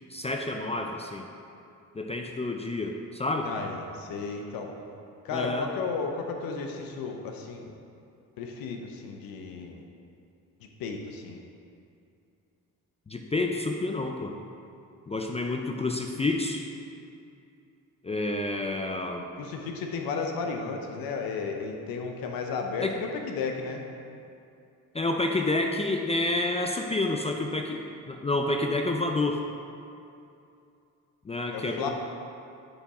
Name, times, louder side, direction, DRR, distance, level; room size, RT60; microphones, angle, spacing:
voice 1, 0.1-1.3 1.9-3.5 5.3-5.7 13.1-14.3 15.1-16.6 18.0-19.3 22.8-23.0 24.9-29.4 31.2-31.9, left 2 dB, 20° left, 3 dB, 0.3 m, -29 dB
voice 2, 3.4-4.7 5.2-7.7 8.4-9.8 10.6-11.4 19.4-23.8 31.5-31.9, left 4 dB, 90° left, 3 dB, 0.7 m, -34 dB
7.1 x 3.5 x 4.1 m, 2.6 s
cardioid pair, 85°, 34 cm